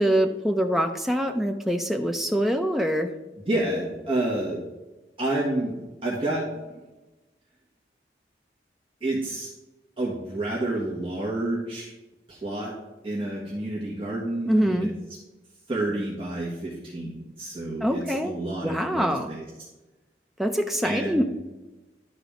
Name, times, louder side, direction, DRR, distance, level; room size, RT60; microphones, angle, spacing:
voice 1, 0.0-3.1 14.5-14.9 17.8-18.3 18.6-19.3 20.4-21.2, equal, ahead, 4 dB, 0.5 m, -24 dB
voice 2, 3.4-4.6 5.2-6.4 9.0-9.5 10.0-11.9 12.3-12.7 13.0-14.9 15.7-19.4 20.8-21.2, right 1 dB, 30° right, -6 dB, 1.5 m, -29 dB
11.5 x 4.0 x 5.1 m, 1.1 s
head